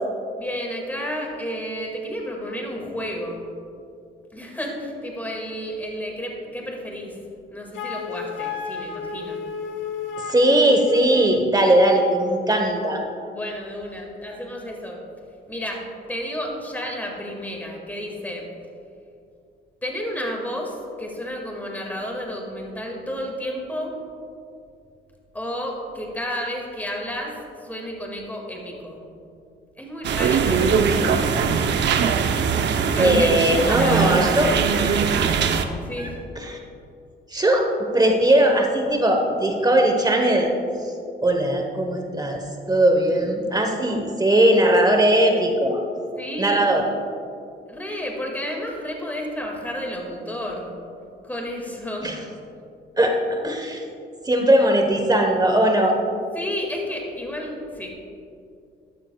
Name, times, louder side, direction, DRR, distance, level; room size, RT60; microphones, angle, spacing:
voice 1, 0.3-3.5 4.3-7.2 7.5-9.4 13.3-15.0 15.5-18.5 19.8-24.0 25.3-29.0 29.8-31.5 32.9-34.2 35.8-36.2 46.2-46.7 47.7-50.8 51.2-52.4 56.3-57.9, equal, 10° left, 0 dB, 2.1 m, -31 dB
Wind instrument woodwind instrument, 7.7-11.4, left 5 dB, 75° left, 0.9 m, -32 dB
voice 2, 10.2-13.0 33.0-35.1 36.0-36.1 36.4-36.6 37.3-37.7 37.9-40.5 41.2-42.4 42.7-45.8 46.4-46.8 52.0-52.1 53.0-53.8 54.2-56.0, right 1 dB, 20° right, 2 dB, 1.1 m, -19 dB
sound 1, 30.0-35.6, right 6 dB, 65° right, 0.7 m, -21 dB
13.0 x 11.5 x 2.3 m, 2.6 s
cardioid pair, 90°, 20 cm